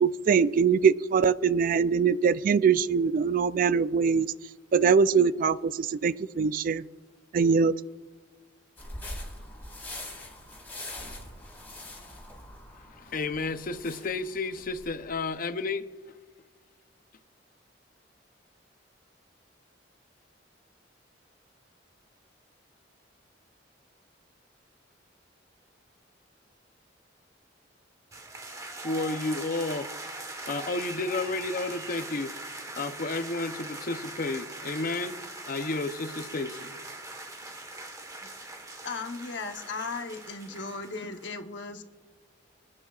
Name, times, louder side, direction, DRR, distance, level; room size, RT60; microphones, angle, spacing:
voice 1, 0.0-4.3 4.7-6.8 7.3-7.7, right 6 dB, 50° right, 16 dB, 0.3 m, -23 dB
sound 1, 8.8-15.2, left 1 dB, 10° left, 3.7 m, -43 dB
voice 2, 12.9-15.9 28.8-29.9 30.5-32.3 32.8-35.2 35.5-36.7, left 3 dB, 50° left, 10 dB, 0.7 m, -31 dB
sound 2, 28.1-41.3, right 2 dB, 20° right, 1.3 m, -41 dB
voice 3, 38.8-41.9, left 4 dB, 70° left, 5 dB, 1.0 m, -37 dB
26.0 x 9.7 x 2.4 m, 1.3 s
head